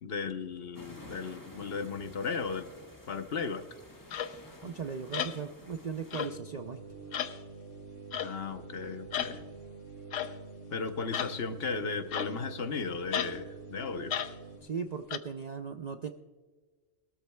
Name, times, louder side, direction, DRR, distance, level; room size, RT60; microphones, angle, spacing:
voice 1, 0.0-2.7 3.1-3.7 8.2-9.4 10.7-14.1, left 4 dB, 55° left, 8 dB, 1.0 m, -35 dB
sound 1, 0.7-6.3, left 1 dB, 15° left, 1.6 m, -51 dB
sound 2, 4.1-4.4 5.1-5.4 6.1-6.4 7.1-7.4 8.1-8.4 9.1-9.4 10.1-10.3 11.1-11.4 12.1-12.5 13.1-13.4 14.1-14.3 15.1-15.2, left 9 dB, 80° left, 1.1 m, -34 dB
voice 2, 4.6-6.8 14.6-16.1, right 6 dB, 50° right, 6 dB, 0.5 m, -38 dB
sound 3, 6.1-14.6, right 4 dB, 90° right, 4.9 m, -47 dB
21.0 x 13.5 x 2.3 m, 1.4 s
omnidirectional pair, 1.3 m